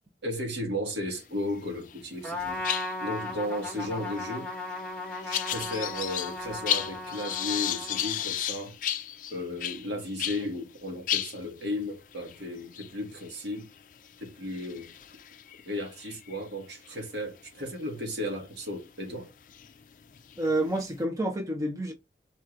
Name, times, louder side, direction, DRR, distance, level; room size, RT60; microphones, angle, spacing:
voice 1, 0.2-2.6 3.0-4.5 5.2-8.8 9.3-13.7 14.2-14.9 15.6-19.3, left 1 dB, 85° right, 1.7 m, -35 dB
sound 1, 1.5-2.0 2.3-10.5 10.8-10.9 11.1-16.9 17.5-17.7 18.6-18.7 19.3-21.0, left 11 dB, 45° left, 0.4 m, -35 dB
Trumpet, 2.2-8.4, left 2 dB, 5° left, 1.2 m, -36 dB
voice 2, 20.4-21.9, right 1 dB, 20° right, 0.9 m, -28 dB
4.2 x 3.1 x 3.8 m
head